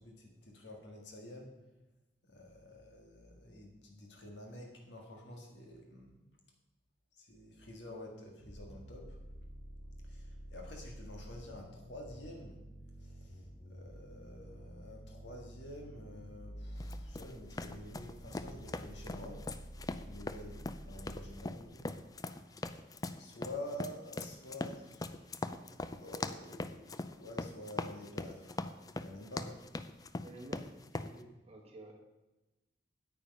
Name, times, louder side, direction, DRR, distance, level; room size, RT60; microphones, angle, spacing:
voice 1, 0.0-1.5 2.3-6.2 7.2-9.2 10.0-12.6 13.0-19.5 20.0-21.9 23.2-25.3 25.8-29.6, left 1 dB, 80° left, 2 dB, 1.8 m, -49 dB
sound 1, 8.4-21.7, equal, 45° left, 2.9 m, -49 dB
sound 2, 16.8-31.1, left 2 dB, 20° left, 0.4 m, -41 dB
voice 2, 30.2-31.9, right 1 dB, 35° right, 1 dB, 1.4 m, -51 dB
9.4 x 8.9 x 5.3 m, 1.0 s
head